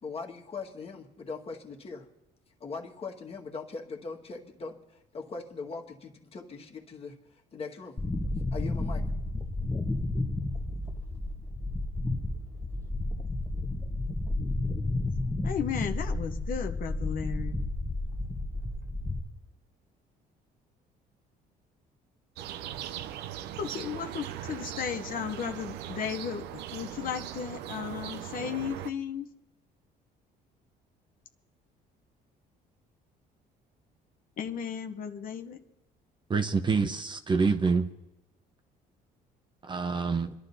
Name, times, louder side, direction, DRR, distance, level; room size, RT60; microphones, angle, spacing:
voice 1, 0.0-2.1 2.6-7.2 7.5-8.0 8.5-9.0, left 4 dB, 35° left, 1 dB, 1.8 m, -40 dB
sound 1, 8.0-19.2, left 2 dB, 15° left, 1.3 m, -32 dB
voice 2, 15.4-17.5 23.6-26.5 26.7-29.3 34.4-35.6, left 7 dB, 55° left, 5 dB, 0.9 m, -34 dB
sound 2, 22.4-28.9, right 11 dB, 85° right, 0.6 m, -39 dB
voice 3, 36.3-37.9 39.6-40.3, right 4 dB, 30° right, 8 dB, 0.8 m, -26 dB
27.5 x 11.5 x 2.8 m, 0.92 s
cardioid pair, 110°, 17 cm